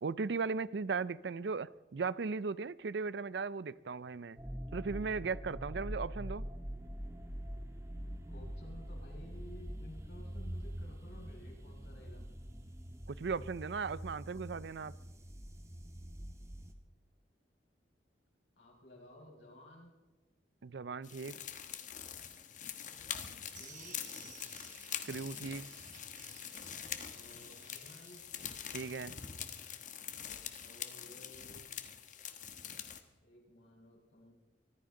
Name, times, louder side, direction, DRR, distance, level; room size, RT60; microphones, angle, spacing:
voice 1, 0.0-4.4 4.7-6.4 13.1-14.9 20.6-21.4 25.0-25.7 28.7-29.1, right 4 dB, 65° right, 19 dB, 0.5 m, -37 dB
sound 1, 4.4-16.7, equal, 15° right, 1.5 m, -44 dB
voice 2, 8.3-12.3 18.6-19.9 23.6-24.0 27.0-28.2 30.6-31.7 33.2-34.3, left 1 dB, 75° left, -1 dB, 5.7 m, -55 dB
sound 2, 21.0-33.0, left 9 dB, 45° left, 1.3 m, -44 dB
sound 3, 23.4-29.8, right 6 dB, 45° right, 2.3 m, -58 dB
24.5 x 15.0 x 3.8 m, 1.2 s
head